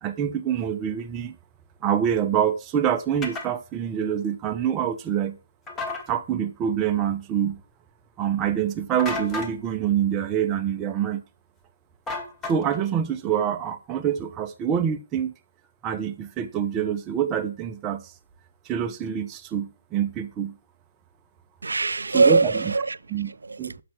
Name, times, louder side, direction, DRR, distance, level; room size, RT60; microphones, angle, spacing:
voice 1, 0.0-1.4 1.8-5.4 6.1-7.6 8.2-11.2 12.4-15.3 15.8-18.1 18.6-20.5 22.1-22.5 23.1-23.3 23.6-23.7, right 9 dB, 15° right, 0.8 m, -26 dB
sound 1, 3.2-3.5 5.7-6.0 9.0-9.6 12.1-12.8, left 2 dB, 10° left, 1.3 m, -32 dB
voice 2, 21.6-23.0 23.2-23.8, right 3 dB, 75° right, 0.3 m, -22 dB
7.1 x 6.0 x 6.3 m
figure-of-eight pair, 145°, 0 cm